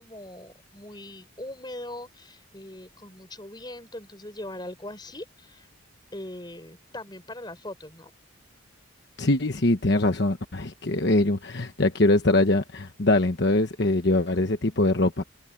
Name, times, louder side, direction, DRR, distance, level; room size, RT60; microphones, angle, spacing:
voice 1, 0.0-5.7 6.1-8.1, left 1 dB, 20° left, 4.7 m, -40 dB
voice 2, 9.2-15.2, left 2 dB, 55° left, 1.2 m, -23 dB
head